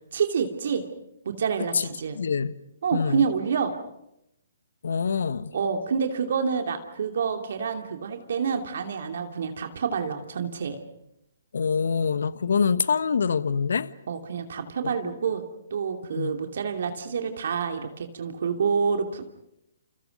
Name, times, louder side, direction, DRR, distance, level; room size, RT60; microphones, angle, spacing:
voice 1, 0.1-0.8 1.2-2.2 2.8-3.7 5.5-10.8 14.1-15.4 15.7-19.2, right 6 dB, 60° right, 5 dB, 2.8 m, -28 dB
voice 2, 2.1-2.5 2.9-3.2 4.8-5.5 11.5-13.9 14.8-15.1 16.1-16.3, left 6 dB, 70° left, 15 dB, 1.2 m, -25 dB
29.0 x 29.0 x 5.3 m, 0.84 s
figure-of-eight pair, 130°, 0 cm